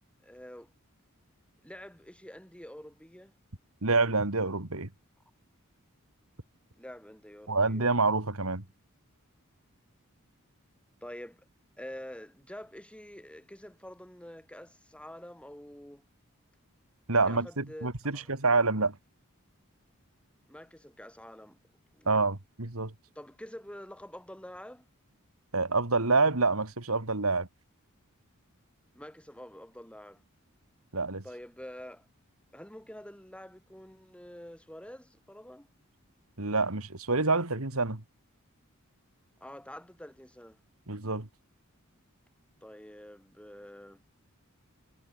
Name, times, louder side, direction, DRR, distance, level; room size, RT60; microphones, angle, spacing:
voice 1, 0.2-0.7 1.6-3.3 6.8-7.9 11.0-11.4 11.8-16.0 17.1-18.3 20.5-21.6 21.9-22.1 23.1-24.9 29.0-30.2 31.2-32.1 32.5-35.7 39.4-40.6 42.6-44.0, equal, 5° left, 5.8 m, -47 dB
voice 2, 3.8-4.9 7.5-8.6 17.1-19.0 22.1-22.9 25.5-27.5 30.9-31.2 36.4-38.0 40.9-41.3, right 3 dB, 75° right, 2.5 m, -27 dB
head